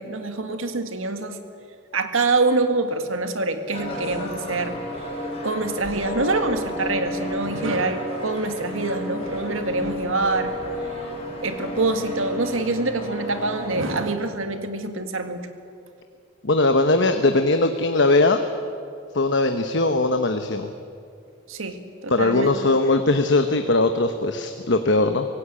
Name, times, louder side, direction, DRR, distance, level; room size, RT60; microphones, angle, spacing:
voice 1, 0.0-1.4 1.9-4.8 5.4-10.5 11.4-15.4 21.5-22.5, right 3 dB, 80° right, 7 dB, 1.9 m, -25 dB
sound 1, 3.7-13.8, equal, 30° left, 4.8 m, -32 dB
voice 2, 16.4-18.4 19.1-20.7 22.1-25.3, left 2 dB, 60° left, 7 dB, 1.1 m, -20 dB
24.5 x 16.5 x 8.9 m, 2.4 s
head